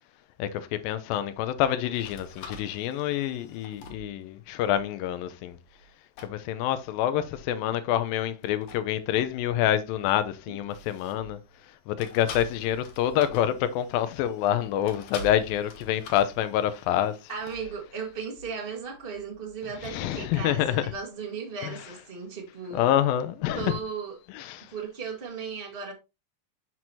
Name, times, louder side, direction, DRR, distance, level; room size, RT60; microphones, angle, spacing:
voice 1, 0.4-5.6 6.2-11.4 11.9-17.1 19.8-20.8 21.6-21.7 22.7-23.8 24.4-24.7, left 11 dB, 85° left, 2.5 m, -27 dB
sound 1, 1.9-5.9 6.2-6.4 8.4-11.6 12.0-20.2, left 2 dB, 65° left, 2.2 m, -47 dB
voice 2, 17.3-22.9 23.5-24.2 24.7-25.9, right 5 dB, 80° right, 0.5 m, -36 dB
7.5 x 6.2 x 2.8 m
omnidirectional pair, 4.0 m